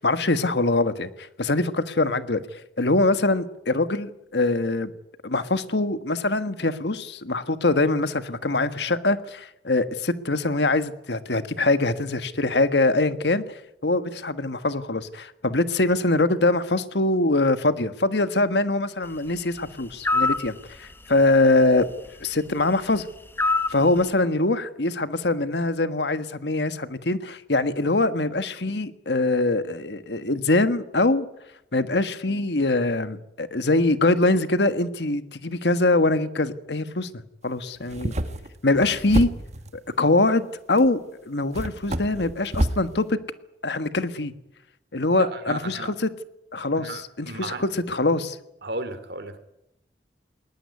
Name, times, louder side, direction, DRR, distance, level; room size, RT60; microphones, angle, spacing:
voice 1, 0.0-4.9 5.2-13.4 13.8-21.9 22.2-23.1 23.7-31.3 31.7-37.1 37.4-38.1 38.6-39.3 39.7-43.2 43.6-44.3 44.9-46.1 46.5-48.4, left 2 dB, 70° left, 11 dB, 1.5 m, -23 dB
sound 1, 20.0-20.5 23.4-23.8, left 3 dB, 15° left, 0.9 m, -22 dB
sound 2, 37.8-39.8 40.8-40.9 41.5-42.9, right 1 dB, 40° right, 1.6 m, -28 dB
voice 2, 45.2-45.9 46.8-47.6 48.6-49.4, right 3 dB, 65° right, 12 dB, 2.7 m, -34 dB
20.5 x 19.0 x 9.7 m, 0.84 s
head